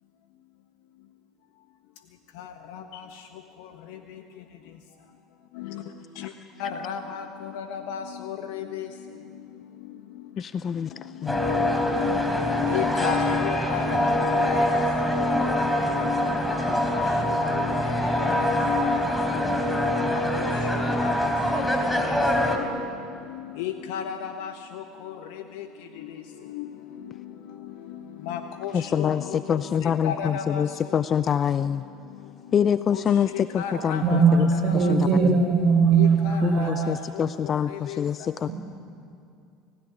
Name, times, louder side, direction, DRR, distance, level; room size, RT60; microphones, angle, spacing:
voice 1, 2.4-3.2 3.6-4.2 5.5-5.8 6.2-6.3 6.6-8.9 11.2-11.4 11.8-12.1 12.4-14.1 14.3-14.8 16.3-18.6 20.1-22.7 23.3-25.7 25.9-26.2 26.4-27.3 27.6-31.0 32.9-35.0 35.9-38.0, left 8 dB, 70° left, 6 dB, 1.3 m, -36 dB
voice 2, 10.4-11.6 28.7-31.8 32.5-35.4 36.4-38.5, left 8 dB, 40° left, 14 dB, 0.6 m, -26 dB
Piazza San Marcos Ambience Bells Crowd Construction, 11.3-22.6, left 1 dB, 5° left, 4.1 m, -24 dB
voice 3, 34.0-36.9, right 5 dB, 50° right, 3 dB, 6.6 m, -20 dB
29.0 x 16.5 x 9.9 m, 2.5 s
hypercardioid pair, 75°, 0 cm